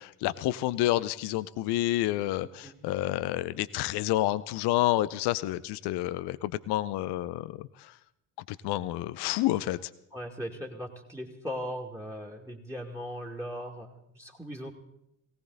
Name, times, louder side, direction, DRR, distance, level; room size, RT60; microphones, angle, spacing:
voice 1, 0.0-7.9 8.5-9.8, left 15 dB, 55° left, 16 dB, 0.7 m, -29 dB
voice 2, 10.1-14.7, equal, 5° right, 4 dB, 2.4 m, -38 dB
18.0 x 17.5 x 4.1 m, 0.78 s
hypercardioid pair, 50°, 48 cm